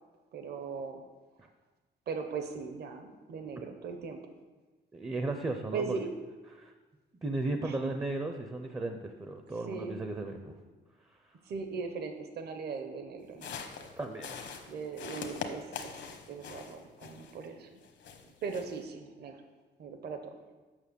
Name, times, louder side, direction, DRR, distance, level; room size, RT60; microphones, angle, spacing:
voice 1, 0.3-1.0 2.1-4.2 5.7-6.1 7.6-7.9 9.6-10.0 11.4-13.6 14.7-15.9 16.3-17.7 18.2-19.4 19.8-20.4, right 5 dB, 60° right, 6 dB, 0.8 m, -39 dB
voice 2, 4.9-6.1 6.6-6.7 7.2-10.5 11.0-11.4 14.0-14.6, right 2 dB, 15° right, 6 dB, 0.5 m, -36 dB
sound 1, 13.3-17.5 17.8-18.8, left 6 dB, 75° left, 0.9 m, -43 dB
7.3 x 6.1 x 6.7 m, 1.3 s
wide cardioid pair, 175°, 19 cm